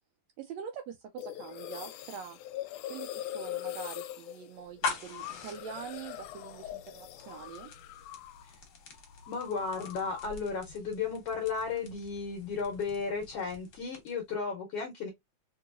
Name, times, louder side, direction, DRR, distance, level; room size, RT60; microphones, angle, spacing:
voice 1, 0.4-2.4 2.9-7.7, right 8 dB, 80° right, 1.6 m, -44 dB
sound 1, 1.2-8.6 8.8-10.4, left 13 dB, 85° left, 2.0 m, -42 dB
sound 2, 4.6-14.3, left 5 dB, 50° left, 1.4 m, -44 dB
voice 2, 9.3-15.1, left 5 dB, 70° left, 1.6 m, -34 dB
4.6 x 2.9 x 2.4 m
omnidirectional pair, 3.4 m